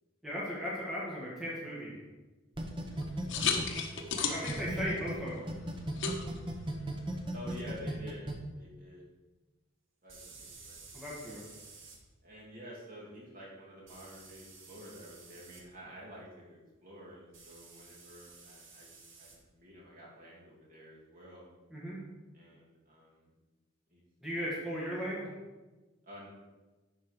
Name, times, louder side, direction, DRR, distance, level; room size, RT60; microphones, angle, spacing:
voice 1, 0.2-2.0 4.2-5.5 10.9-11.4 21.7-22.0 24.2-25.3, equal, ahead, -7 dB, 1.5 m, -37 dB
sound 1, 2.6-5.1 5.5-8.3, right 1 dB, 25° right, 0.9 m, -36 dB
voice 2, 2.7-3.7 4.7-5.0 7.3-8.2 8.6-9.0 10.0-11.1 12.2-21.5 22.3-23.3 23.9-24.0 24.6-24.8 26.0-26.3, equal, 45° right, -5 dB, 2.7 m, -50 dB
sound 2, 2.9-7.6, left 6 dB, 70° left, 0.9 m, -37 dB
sound 3, 6.6-6.7 10.1-12.0 13.9-15.6 17.3-19.4, right 4 dB, 80° right, 1.6 m, -53 dB
11.0 x 4.5 x 4.7 m, 1.2 s
head